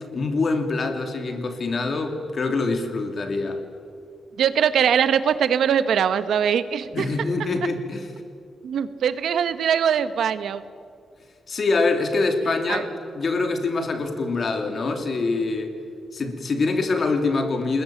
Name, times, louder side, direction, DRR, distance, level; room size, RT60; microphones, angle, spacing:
voice 1, 0.1-3.6 6.9-8.1 11.5-12.9 13.1-15.7 16.1-17.8, left 3 dB, 40° left, 5 dB, 2.9 m, -24 dB
voice 2, 4.4-7.1 8.6-10.6 12.7-12.9, right 8 dB, 75° right, 12 dB, 1.2 m, -22 dB
27.0 x 21.0 x 9.2 m, 2.2 s
wide cardioid pair, 180°, 0 cm